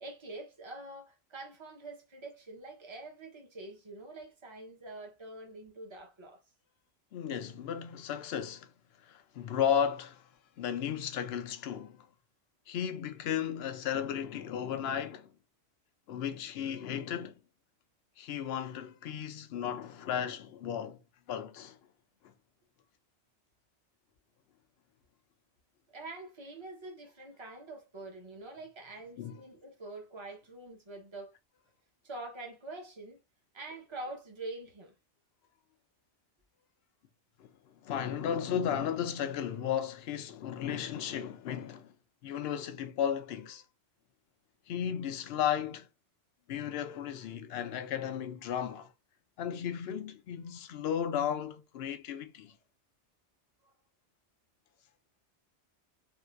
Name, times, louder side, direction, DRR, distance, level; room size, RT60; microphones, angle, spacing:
voice 1, 0.0-6.4 25.9-31.3 32.0-33.2 33.5-34.9 53.6-53.7, right 2 dB, 25° right, 0.9 m, -45 dB
voice 2, 7.1-8.7 9.0-10.3 10.6-12.1 12.7-15.3 16.1-17.4 18.2-21.0 21.3-21.8 22.2-22.3 29.2-29.4 37.4-41.9 42.2-43.6 44.7-45.9 46.5-48.9 49.4-52.6, left 9 dB, 65° left, 0.7 m, -34 dB
3.7 x 2.4 x 2.4 m
omnidirectional pair, 1.2 m